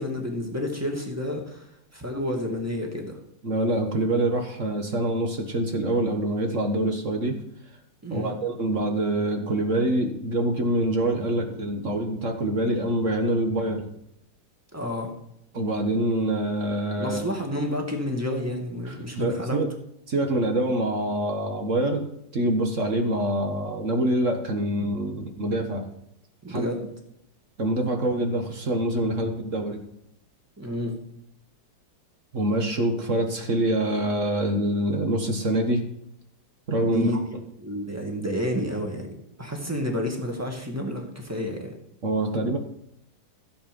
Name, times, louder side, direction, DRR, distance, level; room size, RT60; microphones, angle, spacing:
voice 1, 0.0-3.2 8.0-8.4 14.7-15.1 17.0-19.6 26.4-26.9 30.6-31.0 36.8-37.2 37.6-39.1 39.4-41.7, left 1 dB, 10° right, 2 dB, 2.0 m, -30 dB
voice 2, 3.4-7.4 8.1-13.8 15.5-17.2 18.8-19.7 20.1-22.1 22.3-25.9 26.5-26.6 27.6-29.8 32.3-35.8 36.7-37.1 42.0-42.6, right 1 dB, 45° right, 3 dB, 1.6 m, -25 dB
15.0 x 7.7 x 5.3 m, 0.76 s
omnidirectional pair, 1.9 m